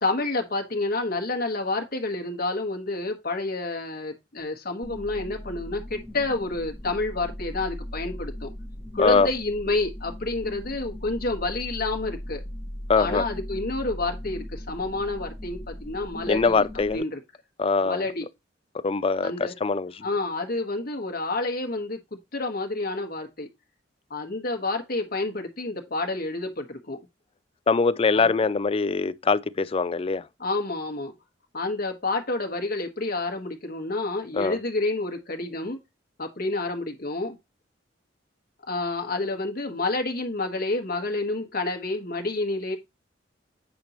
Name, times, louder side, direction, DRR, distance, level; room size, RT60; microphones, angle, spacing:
voice 1, 0.0-8.5 8.9-12.4 12.9-16.7 16.9-17.2 17.8-18.2 19.2-19.5 20.0-22.0 22.3-23.5 24.1-27.1 28.1-28.3 30.4-31.1 31.5-35.8 36.2-37.4 38.7-42.8, left 2 dB, 55° left, 1.5 m, -29 dB
sound 1, 4.8-17.0, left 1 dB, 5° left, 1.6 m, -38 dB
voice 2, 12.9-13.2 16.3-17.0 17.6-18.0 18.8-20.1 27.7-30.2 34.3-34.6, left 4 dB, 30° left, 0.4 m, -23 dB
8.6 x 5.3 x 3.0 m
head